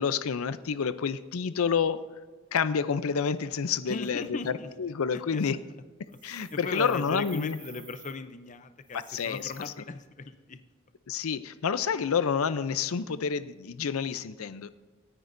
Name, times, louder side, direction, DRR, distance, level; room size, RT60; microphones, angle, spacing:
voice 1, 0.0-2.1 2.5-4.2 4.8-5.6 6.2-7.6 9.1-9.5 11.1-14.7, left 6 dB, 90° left, 13 dB, 0.5 m, -28 dB
voice 2, 3.9-4.7 5.1-5.6 6.1-10.6, left 4 dB, 35° left, 10 dB, 0.5 m, -38 dB
sound 1, 6.1-8.1 8.8-9.7, right 6 dB, 20° right, 1.3 m, -52 dB
26.0 x 9.6 x 2.6 m, 1.4 s
head